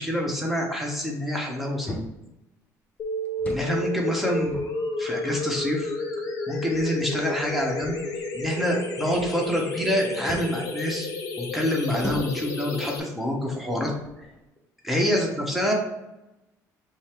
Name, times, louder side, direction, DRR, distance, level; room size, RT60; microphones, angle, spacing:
voice 1, 0.0-2.0 3.5-4.5 5.0-5.9 6.5-8.0 8.3-11.1 11.4-13.9 14.8-15.7, equal, ahead, -1 dB, 1.1 m, -26 dB
sound 1, 1.9-2.3 3.3-3.8 4.2-5.3 6.0-6.1 6.7-8.7 9.0-9.5 10.3-10.6 12.0-12.6 13.3-13.4 13.9-14.4, left 1 dB, 20° left, 0.7 m, -39 dB
sound 2, 3.0-13.0, left 2 dB, 65° left, 0.9 m, -31 dB
5.4 x 2.1 x 4.5 m, 0.96 s
cardioid pair, 110°, 7 cm